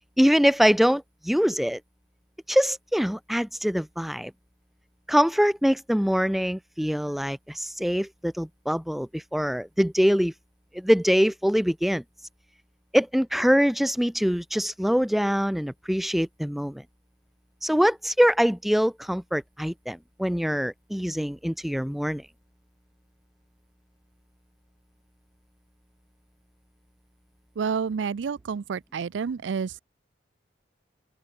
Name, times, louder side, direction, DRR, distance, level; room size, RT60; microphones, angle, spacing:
voice 1, 0.2-1.8 2.5-4.3 5.1-10.3 10.7-12.0 12.9-16.8 17.6-22.2, equal, ahead, 0.3 m, -24 dB
voice 2, 27.6-29.8, right 6 dB, 80° right, 0.4 m, -29 dB
open air
head